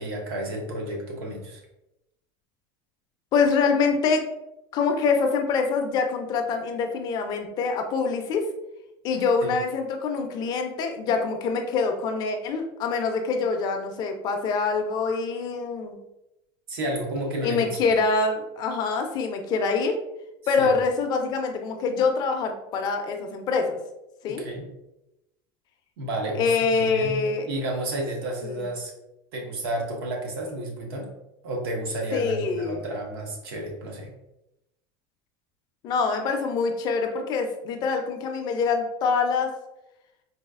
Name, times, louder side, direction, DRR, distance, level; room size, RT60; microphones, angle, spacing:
voice 1, 0.0-1.6 9.4-9.5 16.7-17.7 20.6-20.7 24.3-24.7 26.0-28.9 29.3-31.1 31.4-34.1, right 1 dB, 85° right, 1 dB, 0.9 m, -31 dB
voice 2, 3.3-4.2 4.7-8.4 9.0-16.0 17.4-19.9 20.5-23.8 24.2-24.4 26.4-27.5 28.4-28.6 32.1-32.8 35.8-39.5, left 4 dB, 35° left, 4 dB, 0.4 m, -25 dB
4.0 x 2.3 x 2.4 m, 0.89 s
supercardioid pair, 160°, 12 cm